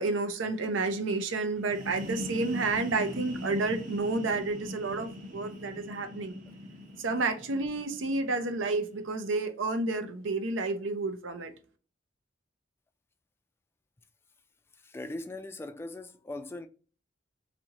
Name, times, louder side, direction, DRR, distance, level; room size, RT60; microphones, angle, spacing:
voice 1, 0.0-6.4 7.0-11.5, right 3 dB, 90° right, 0.6 m, -30 dB
sound 1, 1.6-9.2, left 1 dB, 45° right, 0.7 m, -41 dB
voice 2, 14.8-16.7, left 2 dB, 15° left, 0.3 m, -40 dB
4.2 x 2.7 x 2.8 m
head